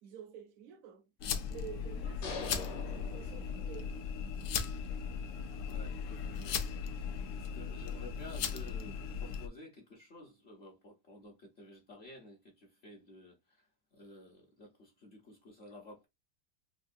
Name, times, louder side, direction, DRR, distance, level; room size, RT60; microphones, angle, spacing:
voice 1, 0.0-1.1 1.5-3.9, right 8 dB, 70° right, 0.9 m, -49 dB
sound 1, 1.2-9.5, left 6 dB, 70° left, 0.7 m, -38 dB
sound 2, 2.2-4.0, left 5 dB, 90° left, 1.5 m, -43 dB
voice 2, 5.7-6.7 7.3-16.1, left 2 dB, 45° left, 1.0 m, -53 dB
4.3 x 2.3 x 2.5 m
omnidirectional pair, 1.8 m